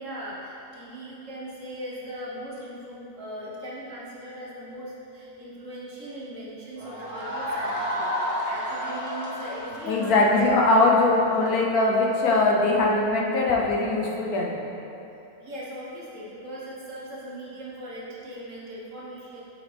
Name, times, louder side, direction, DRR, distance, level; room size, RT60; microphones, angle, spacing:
voice 1, 0.0-10.8 11.3-11.5 15.4-19.4, equal, 55° right, -6 dB, 1.5 m, -39 dB
sound 1, 6.8-11.5, equal, 75° right, 1.7 m, -31 dB
voice 2, 9.9-14.5, left 2 dB, 75° left, -2 dB, 1.3 m, -21 dB
7.3 x 5.5 x 3.4 m, 2.9 s
omnidirectional pair, 1.6 m